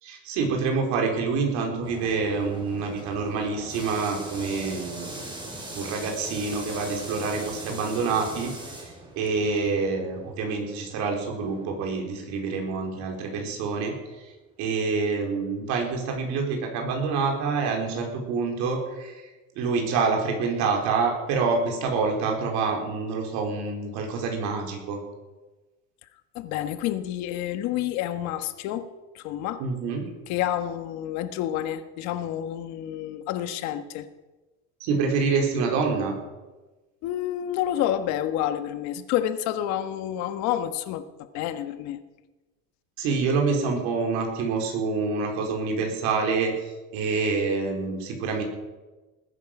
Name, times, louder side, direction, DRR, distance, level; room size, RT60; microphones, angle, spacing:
voice 1, 0.0-8.5 9.2-13.9 14.6-19.3 19.6-25.0 29.6-30.0 34.8-36.2 43.0-48.4, right 4 dB, 70° right, 2 dB, 4.4 m, -27 dB
sound 1, 1.8-12.7 13.0-13.1 13.9-14.0 15.5-15.6, right 1 dB, 15° right, 3.7 m, -41 dB
voice 2, 26.3-28.9 29.1-29.6 30.3-34.1 37.0-41.0 41.3-42.0, left 11 dB, 65° left, 10 dB, 1.4 m, -29 dB
20.0 x 10.5 x 6.0 m, 1.2 s
cardioid pair, 155°, 30 cm